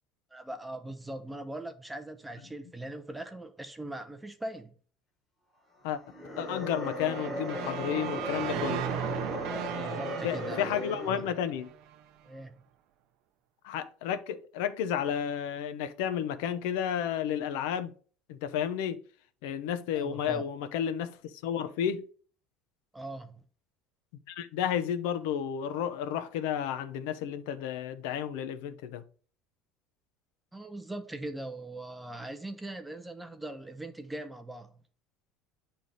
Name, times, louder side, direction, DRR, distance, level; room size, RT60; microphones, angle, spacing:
voice 1, 0.3-4.7 9.5-10.8 11.1-11.2 12.2-12.6 19.9-20.4 22.9-23.4 30.5-34.7, right 2 dB, 5° right, 0.5 m, -41 dB
sound 1, 6.0-11.4, left 1 dB, 10° left, 1.1 m, -37 dB
voice 2, 6.4-8.9 10.2-11.7 13.6-17.9 18.3-19.0 19.4-22.1 24.3-29.0, left 9 dB, 80° left, 0.7 m, -32 dB
sound 2, 7.0-12.0, right 10 dB, 50° right, 0.5 m, -37 dB
9.0 x 3.4 x 4.0 m
cardioid pair, 175°, 0 cm